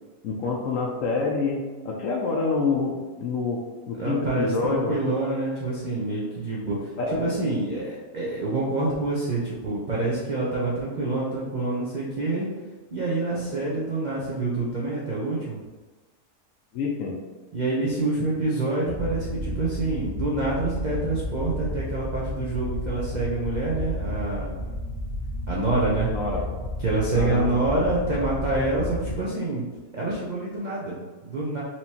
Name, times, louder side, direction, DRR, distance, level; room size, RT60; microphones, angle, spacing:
voice 1, 0.2-1.6 1.8-3.6 3.9-5.1 7.0-7.2 16.7-17.2 26.1-26.4 27.1-27.5, left 4 dB, 65° left, 0 dB, 0.9 m, -27 dB
voice 2, 4.0-12.5 12.9-15.6 17.5-24.7 25.5-26.1 26.8-29.6 29.9-31.6, right 2 dB, 50° right, -6 dB, 0.5 m, -27 dB
sound 1, 18.9-29.2, left 1 dB, 85° left, 0.4 m, -32 dB
4.4 x 3.1 x 2.8 m, 1.3 s
omnidirectional pair, 1.7 m